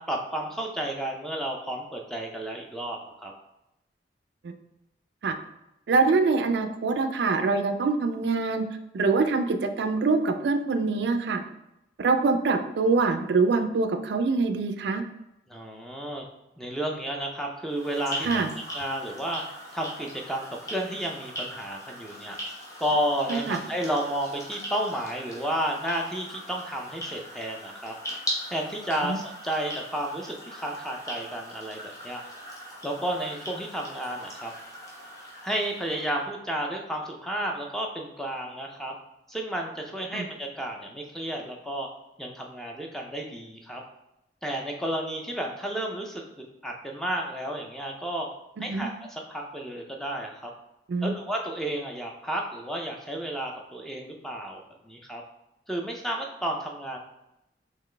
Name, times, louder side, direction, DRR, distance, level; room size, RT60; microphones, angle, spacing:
voice 1, 0.0-3.3 15.5-16.3 16.6-18.3 18.7-19.4 19.7-22.4 22.8-27.9 28.5-32.2 32.8-34.5 35.4-38.9 39.3-41.9 42.2-43.8 44.4-46.2 46.6-48.3 48.6-50.5 51.0-55.2 55.7-57.0, right 1 dB, ahead, 1 dB, 0.4 m, -32 dB
voice 2, 5.9-8.6 8.9-11.4 12.0-15.0 18.2-18.5 23.3-23.6 29.0-29.2 40.1-40.3 48.6-48.9 50.9-51.1, right 4 dB, 70° right, 8 dB, 0.3 m, -24 dB
sound 1, 17.7-36.2, equal, 15° left, 0.9 m, -40 dB
3.9 x 3.1 x 3.2 m, 0.89 s
head